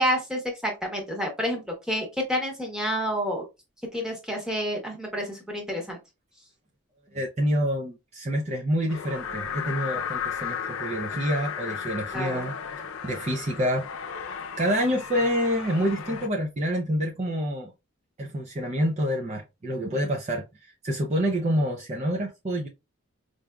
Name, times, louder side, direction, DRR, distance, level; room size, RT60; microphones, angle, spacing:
voice 1, 0.0-3.4 3.9-6.0 12.1-12.5, equal, 5° right, 1.0 m, -29 dB
voice 2, 7.1-12.5 13.0-13.9 14.6-17.7 18.2-22.7, equal, 35° right, 0.5 m, -27 dB
sound 1, 8.9-16.3, left 7 dB, 85° left, 0.5 m, -34 dB
4.7 x 2.6 x 2.2 m
head